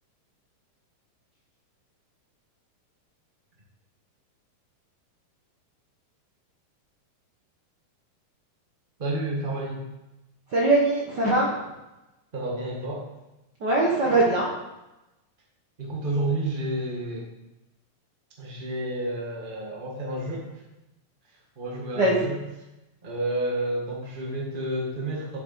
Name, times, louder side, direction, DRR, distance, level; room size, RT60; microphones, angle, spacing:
voice 1, 9.0-9.8 12.3-13.0 15.8-17.3 18.4-20.4 21.6-22.4 23.0-25.4, right 1 dB, 50° right, -2 dB, 0.6 m, -30 dB
voice 2, 10.5-11.5 13.6-14.5 22.0-22.3, right 2 dB, 70° right, -3 dB, 1.0 m, -21 dB
9.9 x 6.9 x 4.2 m, 0.97 s
omnidirectional pair, 3.9 m